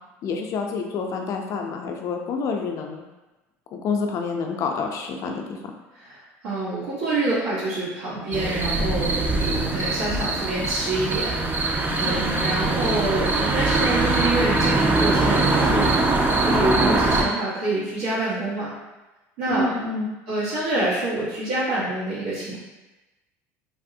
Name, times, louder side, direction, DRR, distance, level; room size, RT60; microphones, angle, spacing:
voice 1, 0.2-3.0 3.7-5.6 12.0-12.4 19.5-20.1, left 5 dB, 50° left, 3 dB, 0.4 m, -28 dB
voice 2, 5.9-18.7 19.4-19.7 20.3-22.6, right 2 dB, 85° right, -11 dB, 1.0 m, -27 dB
sound 1, 8.3-17.2, right 2 dB, 25° right, 0.4 m, -22 dB
3.4 x 2.0 x 2.6 m, 1.1 s
supercardioid pair, 95°, 7 cm